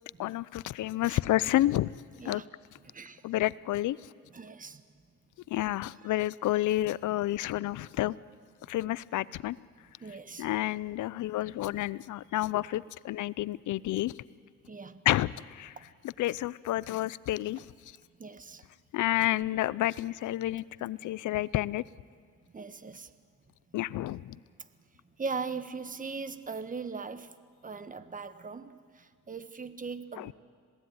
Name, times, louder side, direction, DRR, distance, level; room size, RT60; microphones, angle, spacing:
voice 1, 0.2-1.9 2.2-2.4 3.2-4.0 5.5-8.2 8.7-9.6 10.4-14.1 15.1-15.7 16.0-17.7 18.9-21.8 23.7-24.4 30.2-30.3, left 15 dB, 75° left, 20 dB, 0.7 m, -30 dB
voice 2, 2.8-3.3 4.3-4.8 10.0-10.5 14.7-15.0 15.8-15.9 18.2-18.6 22.5-23.1 25.2-27.3 27.6-30.3, right 4 dB, 25° right, 12 dB, 1.4 m, -39 dB
26.5 x 18.0 x 9.6 m, 2.1 s
cardioid pair, 90°, 30 cm